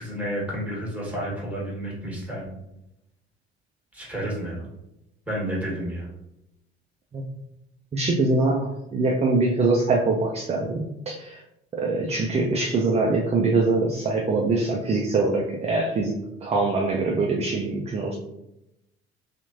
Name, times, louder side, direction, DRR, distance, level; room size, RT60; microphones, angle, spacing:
voice 1, 0.0-2.6 3.9-4.7 5.3-6.1, equal, 5° right, -4 dB, 1.4 m, -31 dB
voice 2, 7.9-10.8 11.1-11.4 11.8-16.1 16.4-18.2, right 3 dB, 20° right, 0 dB, 0.4 m, -23 dB
2.9 x 2.4 x 2.7 m, 0.87 s
hypercardioid pair, 55°, 31 cm